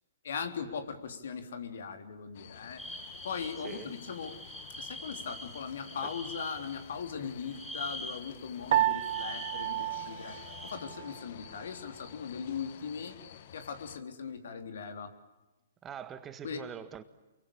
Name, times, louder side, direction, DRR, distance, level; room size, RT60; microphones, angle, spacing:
voice 1, 0.2-2.8 3.2-4.4 4.8-13.2 13.5-15.1 16.4-16.6, left 6 dB, 70° left, 3.5 m, -39 dB
sound 1, 2.3-14.0, left 10 dB, 55° left, 1.7 m, -51 dB
sound 2, 2.8-6.9 7.4-10.7, equal, 5° left, 5.2 m, -45 dB
Piano, 8.7-11.2, right 13 dB, 55° right, 1.0 m, -31 dB
voice 2, 15.8-17.0, right 8 dB, 20° right, 1.6 m, -43 dB
28.5 x 23.0 x 8.8 m
hypercardioid pair, 125°, 0 cm